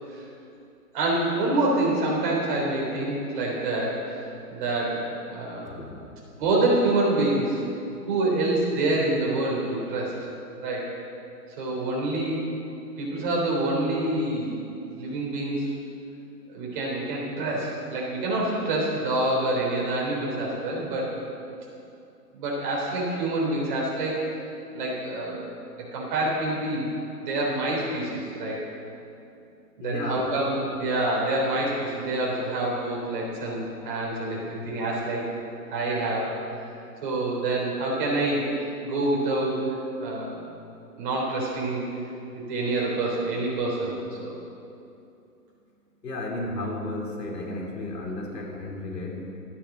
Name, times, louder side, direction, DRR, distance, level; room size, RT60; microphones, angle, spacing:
voice 1, 0.9-5.9 6.4-7.6 8.1-10.1 10.6-10.9 11.6-12.5 13.0-14.6 15.0-15.7 16.5-21.1 22.3-24.2 24.7-25.4 25.8-26.9 27.2-28.6 29.8-35.3 35.7-36.3 37.0-38.5 38.8-40.4 41.0-41.8 42.3-43.9 44.2-44.4, right 2 dB, 30° right, -3 dB, 3.6 m, -27 dB
voice 2, 5.6-6.0 29.8-30.3 46.0-49.2, left 2 dB, 80° left, 0 dB, 3.6 m, -33 dB
14.0 x 9.9 x 7.2 m, 2.7 s
hypercardioid pair, 165°, 49 cm